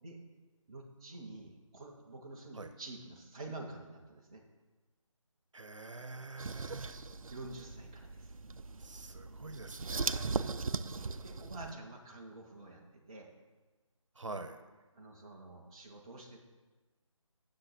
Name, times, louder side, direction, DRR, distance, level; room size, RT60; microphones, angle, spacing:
voice 1, 0.7-4.4 7.3-8.3 10.9-13.3 14.9-16.4, right 2 dB, 10° right, -4 dB, 0.4 m, -48 dB
voice 2, 5.5-7.0 8.8-10.8 14.1-14.6, right 3 dB, 65° right, 9 dB, 0.9 m, -46 dB
sound 1, 6.4-11.7, right 4 dB, 85° right, 0.4 m, -39 dB
9.6 x 6.7 x 3.9 m, 1.3 s
figure-of-eight pair, 155°, 17 cm